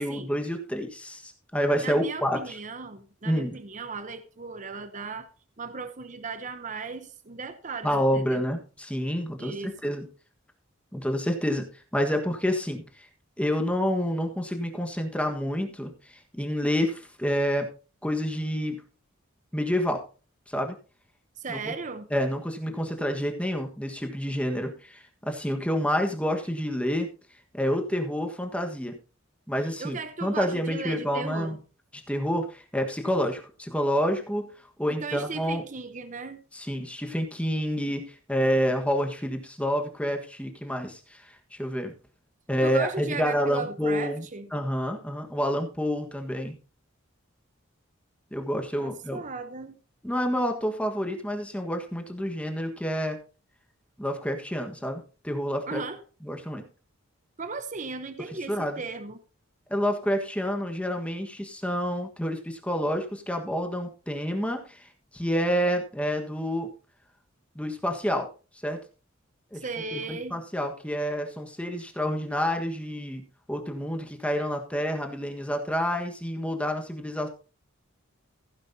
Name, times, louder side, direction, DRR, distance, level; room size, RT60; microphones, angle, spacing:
voice 1, 0.0-2.6 3.2-3.6 7.8-10.0 10.9-11.7 11.9-13.1 13.4-17.7 18.0-18.8 19.5-20.0 20.5-20.7 21.5-21.6 22.1-27.1 27.5-28.9 29.5-31.6 31.9-34.5 34.8-35.6 36.5-41.9 42.5-44.2 44.5-46.6 48.3-49.2 50.0-53.2 54.0-55.8 56.2-56.6 58.5-58.8 59.7-66.7 67.5-68.3 68.6-68.8 69.5-69.6 69.9-73.2 73.5-77.3, equal, 5° left, 1.4 m, -28 dB
voice 2, 1.8-5.3 5.6-8.5 9.4-9.9 21.4-22.1 29.8-31.6 34.9-36.4 42.6-44.5 48.8-49.8 55.7-56.0 57.4-59.2 69.5-70.4, right 4 dB, 35° right, 0.8 m, -36 dB
15.5 x 9.8 x 2.8 m
head